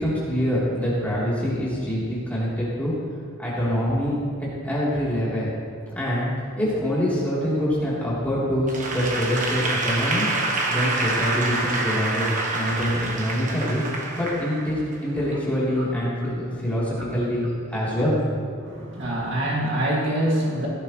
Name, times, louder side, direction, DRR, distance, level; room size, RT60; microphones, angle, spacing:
voice 1, 0.0-2.9 3.4-4.1 4.4-5.5 5.9-6.3 6.5-10.3 10.7-12.3 12.5-18.2, equal, 5° left, -8 dB, 3.4 m, -25 dB
Applause / Crowd, 8.7-15.1, right 2 dB, 35° right, 1.3 m, -27 dB
voice 2, 18.6-20.7, right 1 dB, 55° right, -4 dB, 2.4 m, -25 dB
17.0 x 13.5 x 3.2 m, 2.2 s
head